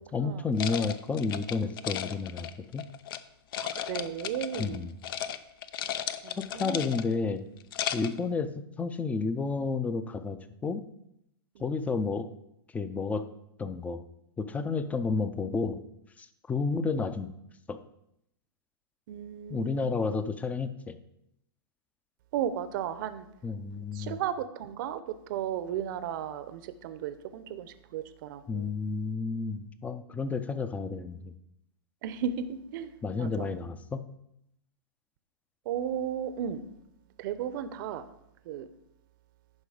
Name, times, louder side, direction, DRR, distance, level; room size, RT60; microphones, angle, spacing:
voice 1, 0.1-2.9 4.6-4.9 6.4-7.4 7.9-10.8 11.6-12.3 12.7-13.2 13.6-14.0 14.4-15.8 16.2-17.3 17.7-17.8 19.5-21.0 23.4-24.2 28.5-31.3 33.0-34.0, left 4 dB, 10° left, 12 dB, 0.5 m, -31 dB
sound 1, 0.6-3.2 3.5-4.8 5.0-5.4 5.6-7.2 7.6-8.2, left 10 dB, 65° left, 0.6 m, -35 dB
voice 2, 3.6-4.8 6.2-6.9 16.7-16.8 19.1-20.2 22.3-23.3 23.9-28.7 32.0-32.9 33.2-33.5 35.7-36.6 37.2-38.0 38.5-38.7, right 9 dB, 55° right, 12 dB, 0.7 m, -35 dB
10.5 x 5.1 x 4.9 m, 0.79 s
hypercardioid pair, 125°, 13 cm